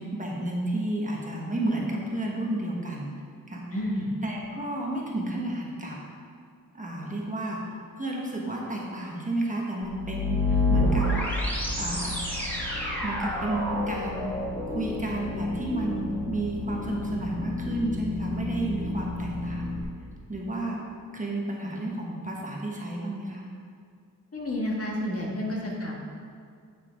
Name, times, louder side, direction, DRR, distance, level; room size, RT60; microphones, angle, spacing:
voice 1, 0.0-3.1 3.5-3.6 4.2-6.0 6.7-7.6 8.0-11.1 11.8-12.2 13.0-14.3 14.7-19.8 20.3-20.9 21.1-23.5, right 1 dB, 20° right, -2 dB, 1.1 m, -31 dB
voice 2, 3.7-4.1 24.3-26.0, left 1 dB, 40° left, -2 dB, 1.5 m, -30 dB
sound 1, 9.8-19.8, left 1 dB, 5° left, 1.4 m, -29 dB
9.0 x 5.5 x 5.1 m, 2.3 s
wide cardioid pair, 155°, 35 cm